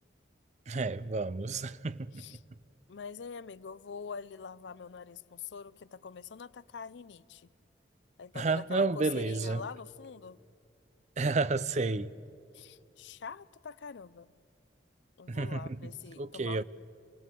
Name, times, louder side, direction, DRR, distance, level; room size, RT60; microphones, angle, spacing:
voice 1, 0.7-2.2 8.3-9.6 11.2-12.1 15.3-15.8 16.2-16.6, right 3 dB, 40° right, 0.5 m, -31 dB
voice 2, 2.9-7.5 8.2-10.4 12.5-14.3 15.2-16.6, left 6 dB, 70° left, 0.5 m, -44 dB
26.5 x 18.5 x 8.4 m
head